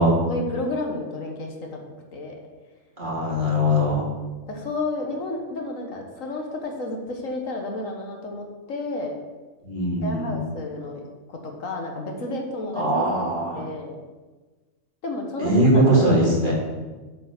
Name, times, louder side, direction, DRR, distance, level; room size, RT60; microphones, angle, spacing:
voice 1, 0.3-1.8 2.1-2.3 4.5-9.2 10.0-11.0 11.3-12.8 13.5-14.0 15.0-15.5 16.0-16.5, left 2 dB, 70° left, 2 dB, 1.5 m, -31 dB
voice 2, 3.0-4.0 9.6-10.4 12.8-13.6 15.4-16.5, equal, 35° right, -6 dB, 2.7 m, -20 dB
7.9 x 5.1 x 6.5 m, 1.3 s
omnidirectional pair, 1.4 m